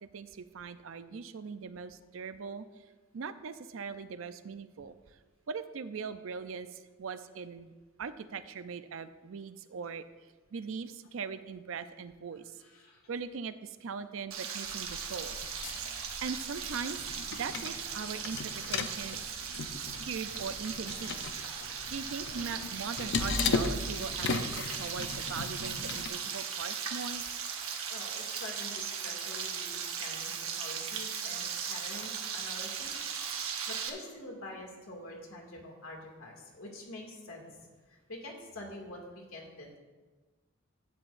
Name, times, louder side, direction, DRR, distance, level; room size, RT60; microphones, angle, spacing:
voice 1, 0.0-2.6 3.1-5.0 5.5-10.0 10.5-12.6 13.1-15.4 16.2-17.0 17.3-19.3 19.8-21.2 21.9-27.2, right 5 dB, 70° right, 12 dB, 0.5 m, -40 dB
voice 2, 12.6-13.0 27.9-33.4 33.7-37.5 37.9-39.8, left 1 dB, 90° left, -1 dB, 2.2 m, -46 dB
Frying (food), 14.3-33.9, right 7 dB, 90° right, 1.0 m, -38 dB
sound 1, 14.7-26.1, left 4 dB, 55° left, 0.6 m, -37 dB
11.5 x 8.9 x 2.5 m, 1.3 s
head